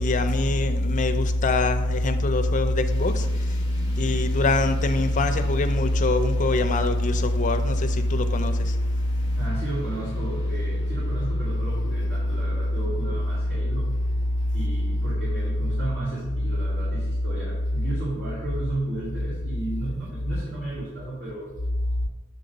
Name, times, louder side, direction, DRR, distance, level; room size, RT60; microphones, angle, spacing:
voice 1, 0.0-3.3 4.0-8.5, left 2 dB, 40° left, 0.4 m, -22 dB
sound 1, 2.9-17.6, left 1 dB, 20° right, 1.2 m, -47 dB
voice 2, 9.4-13.9 14.5-21.5, right 2 dB, 65° right, 2.2 m, -34 dB
7.1 x 3.8 x 5.3 m
head